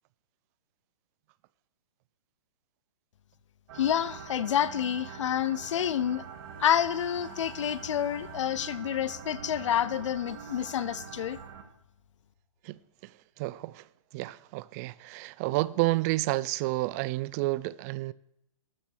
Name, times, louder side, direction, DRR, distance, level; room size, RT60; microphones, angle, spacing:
voice 1, 3.7-6.2 6.6-11.4, left 10 dB, 60° left, 0.7 m, -28 dB
sound 1, 3.7-11.6, right 7 dB, 50° right, 1.6 m, -44 dB
sound 2, 6.1-12.5 12.8-12.9, left 5 dB, 35° left, 3.1 m, -55 dB
voice 2, 12.6-13.1 13.4-13.8 14.1-18.1, right 19 dB, 30° right, 0.4 m, -30 dB
13.0 x 7.2 x 6.5 m
hypercardioid pair, 125°, 17 cm